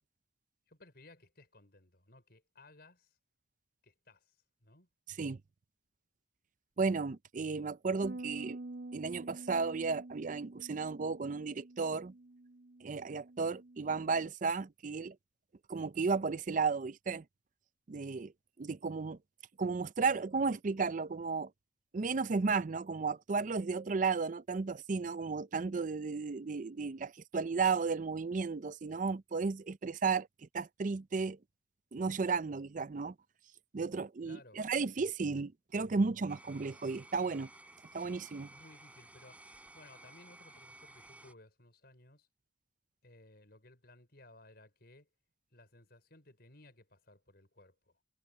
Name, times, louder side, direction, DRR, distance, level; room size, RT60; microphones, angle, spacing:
voice 1, 0.7-3.2 3.8-4.9 34.2-34.6 35.3-35.5 38.5-39.4 39.7-42.3 43.0-45.1 45.5-48.0, left 2 dB, 55° left, 5.8 m, -59 dB
voice 2, 6.8-8.6 8.9-12.1 12.8-15.2 15.7-17.2 17.9-18.3 18.6-19.2 19.6-21.5 21.9-30.3 30.5-31.4 31.9-33.1 33.7-37.5 37.9-38.5, right 4 dB, 45° right, 0.5 m, -34 dB
Bass guitar, 8.0-14.3, right 2 dB, 80° right, 0.9 m, -48 dB
sound 1, 36.3-41.3, right 2 dB, 5° right, 5.5 m, -56 dB
head